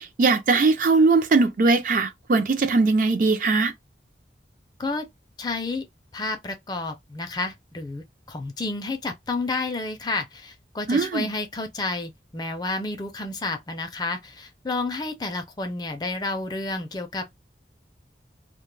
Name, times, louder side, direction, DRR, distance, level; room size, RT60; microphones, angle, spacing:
voice 1, 0.2-3.7 10.9-11.3, right 3 dB, 45° right, 0.4 m, -20 dB
voice 2, 5.4-5.9 6.1-17.3, left 3 dB, 25° left, 0.4 m, -30 dB
2.1 x 2.1 x 3.1 m
head